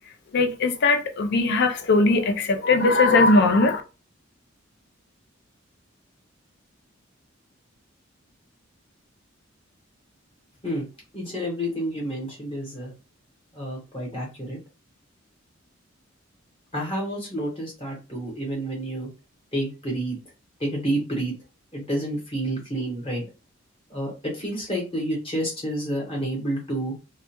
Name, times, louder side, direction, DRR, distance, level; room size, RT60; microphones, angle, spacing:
voice 1, 0.3-3.8, left 3 dB, 55° left, 0.4 m, -19 dB
voice 2, 11.1-12.9 13.5-14.6 16.7-19.1 19.5-20.2 20.6-21.3 21.7-23.2 23.9-26.9, right 1 dB, 25° left, 1.0 m, -29 dB
2.2 x 2.1 x 2.9 m
head